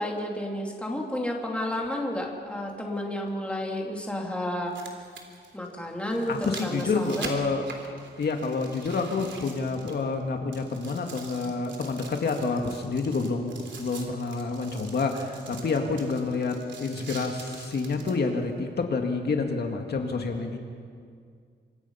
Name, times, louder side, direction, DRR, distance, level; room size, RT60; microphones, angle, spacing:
voice 1, 0.0-4.7 5.5-7.3, left 1 dB, 5° left, -1 dB, 3.1 m, -31 dB
sound 1, 1.2-1.3 3.3-3.4 4.5-10.2 10.5-18.2 18.8-18.9, right 4 dB, 75° right, 3.5 m, -44 dB
voice 2, 6.3-7.7 8.2-20.6, left 4 dB, 60° left, 3 dB, 2.0 m, -28 dB
28.0 x 25.5 x 5.8 m, 2.2 s
wide cardioid pair, 160°, 19 cm